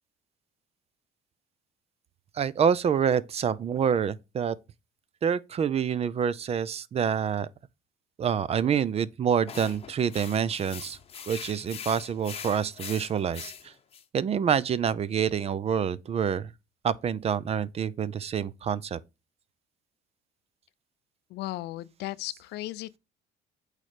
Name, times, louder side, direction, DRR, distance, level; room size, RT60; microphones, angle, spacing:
voice 1, 2.3-4.6 5.2-7.5 8.2-11.0 11.3-13.7 14.1-16.5 16.8-19.0, right 7 dB, 35° right, 0.5 m, -27 dB
sound 1, 9.5-14.0, left 7 dB, 35° left, 0.8 m, -42 dB
voice 2, 21.3-23.0, left 16 dB, 80° left, 0.5 m, -36 dB
8.3 x 3.2 x 5.0 m
cardioid pair, 110°, 17 cm